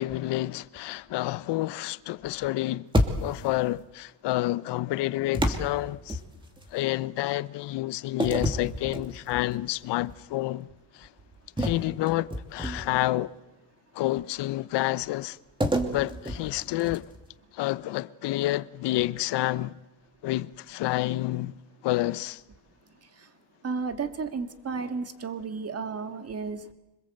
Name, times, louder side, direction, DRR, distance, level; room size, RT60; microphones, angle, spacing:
voice 1, 0.0-2.9 3.2-6.2 6.7-10.7 10.9-11.1 11.6-13.3 13.9-15.4 15.9-17.1 17.5-19.8 20.2-21.6 21.8-22.4, left 16 dB, 60° left, 0.9 m, -29 dB
sound 1, 2.9-3.6 5.3-6.7 8.2-9.5 10.0-10.2 11.6-13.1 15.6-17.2, equal, 10° right, 2.7 m, -29 dB
voice 2, 23.6-26.7, right 4 dB, 30° right, 2.1 m, -33 dB
26.0 x 21.5 x 7.9 m
cardioid pair, 120°, 46 cm